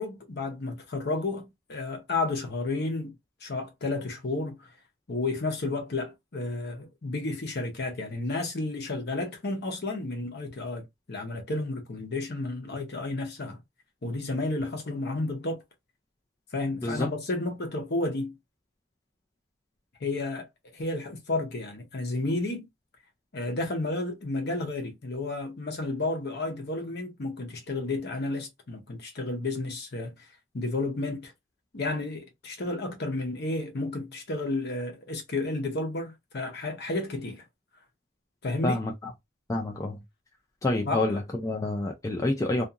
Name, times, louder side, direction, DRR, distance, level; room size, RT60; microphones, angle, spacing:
voice 1, 0.0-3.1 3.4-4.7 5.1-13.6 14.0-15.6 16.5-18.3 20.0-22.7 23.3-30.1 30.5-31.3 31.7-37.4 38.4-38.8 40.9-41.2, left 2 dB, 50° left, 0.8 m, -32 dB
voice 2, 39.5-40.0 40.6-42.6, left 2 dB, 15° left, 0.3 m, -28 dB
2.7 x 2.5 x 2.4 m
head